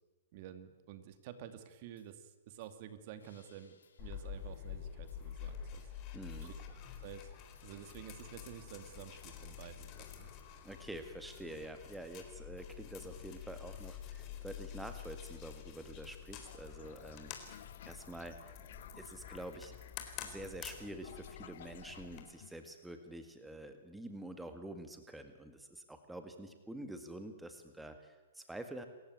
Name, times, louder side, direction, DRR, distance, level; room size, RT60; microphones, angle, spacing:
voice 1, 0.3-5.8 6.4-6.5 7.0-7.3 7.6-10.3, right 10 dB, 45° right, 10 dB, 2.5 m, -50 dB
sound 1, 2.0-2.1 2.6-2.8 3.2-5.7 6.3-6.5 7.6-7.7 8.8-9.0 10.1-10.2 10.7-12.8 13.8-14.0 15.0-15.2 16.3-16.4 17.5-17.6 18.7-18.9, left 6 dB, 85° left, 5.1 m, -70 dB
sound 2, 4.0-22.2, left 8 dB, 35° left, 4.0 m, -48 dB
voice 2, 6.1-6.5 10.6-18.5 19.0-19.7 20.2-28.9, right 1 dB, 5° right, 7 dB, 1.9 m, -47 dB
Toilet flush, 16.3-23.3, left 11 dB, 60° left, 0.9 m, -57 dB
28.0 x 15.0 x 9.5 m, 1.2 s
hypercardioid pair, 140°, 0 cm